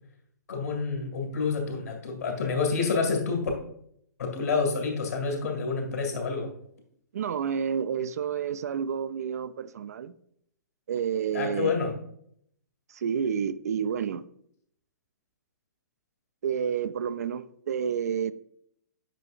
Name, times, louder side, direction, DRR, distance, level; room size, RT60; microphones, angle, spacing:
voice 1, 0.5-3.5 4.2-6.5 11.3-11.9, left 4 dB, 65° left, 2.0 m, -28 dB
voice 2, 7.1-10.1 10.9-11.8 12.9-14.3 16.4-18.3, right 7 dB, 60° right, 0.4 m, -29 dB
9.0 x 5.7 x 2.4 m
figure-of-eight pair, 115°, 10 cm